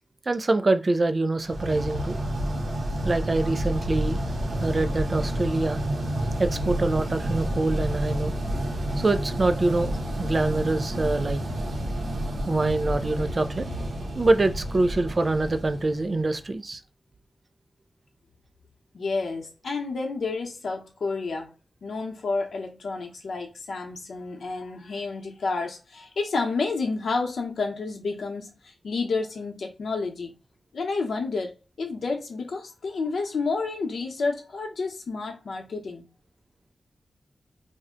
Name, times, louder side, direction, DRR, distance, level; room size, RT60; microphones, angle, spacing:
voice 1, 0.3-2.2 3.0-4.2 4.6-5.8 6.4-8.4 9.0-11.4 12.5-13.7 14.2-16.8, right 2 dB, 40° right, 0.3 m, -25 dB
sound 1, 1.4-16.5, right 1 dB, 85° right, 0.8 m, -29 dB
voice 2, 18.9-21.5 21.8-30.3 30.7-36.0, left 4 dB, 85° left, 0.8 m, -30 dB
2.6 x 2.1 x 3.7 m
wide cardioid pair, 115°, 0 cm